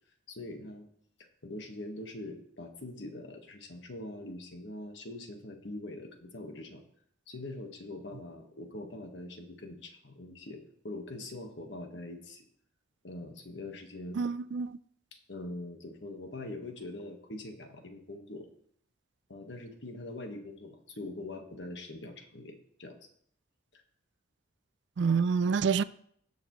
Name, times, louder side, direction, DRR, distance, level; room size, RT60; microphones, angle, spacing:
voice 1, 0.3-0.9 1.4-6.8 7.3-12.4 13.0-14.2 15.1-18.5 19.3-23.0 23.7-23.8, left 2 dB, 65° left, 1.5 m, -43 dB
voice 2, 14.2-14.8 25.0-25.8, right 5 dB, 60° right, 0.4 m, -27 dB
17.5 x 6.8 x 3.1 m
head